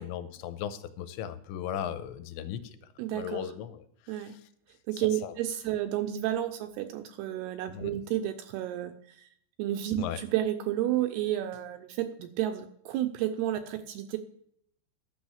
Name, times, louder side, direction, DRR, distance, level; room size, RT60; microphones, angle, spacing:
voice 1, 0.0-2.8 3.1-4.4 5.2-5.3 7.7-8.0 10.0-10.2, left 9 dB, 90° left, 10 dB, 2.9 m, -37 dB
voice 2, 3.0-3.4 4.1-4.3 4.9-8.9 9.2-9.3 9.6-14.2, right 12 dB, 80° right, 8 dB, 2.4 m, -31 dB
11.0 x 6.3 x 7.0 m, 0.68 s
omnidirectional pair, 5.1 m